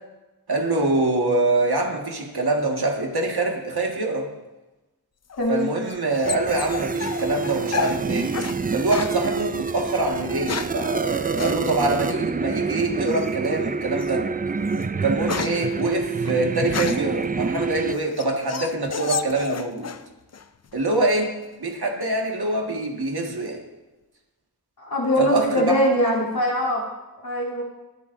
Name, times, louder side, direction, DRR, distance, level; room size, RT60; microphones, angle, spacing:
voice 1, 0.5-4.3 5.5-8.3 8.7-14.3 15.0-19.9 20.7-23.6 25.2-25.8, right 2 dB, 80° right, 0 dB, 1.8 m, -24 dB
sound 1, 5.3-8.6 8.9-9.2 10.1-10.8 11.4-11.6 13.1-13.5 14.0-14.2 14.6-17.2 17.7-20.1 20.3-20.9, left 5 dB, 45° left, 0.5 m, -31 dB
voice 2, 5.4-5.7 24.8-26.8 27.2-27.6, equal, 75° left, -5 dB, 3.3 m, -22 dB
sound 2, 6.2-17.9, right 4 dB, 25° right, 0.4 m, -27 dB
21.5 x 8.4 x 2.6 m, 1.1 s
wide cardioid pair, 65°, 38 cm